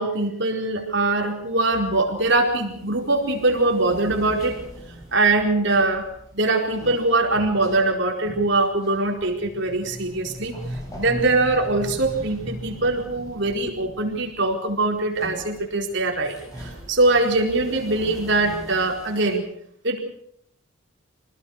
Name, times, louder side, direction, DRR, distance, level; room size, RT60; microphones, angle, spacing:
voice 1, 0.0-4.6 5.1-19.4 19.8-20.0, right 2 dB, 55° right, 1 dB, 4.6 m, -22 dB
sound 1, 0.7-19.4, equal, 15° left, 7.6 m, -40 dB
26.0 x 19.0 x 6.7 m, 0.69 s
head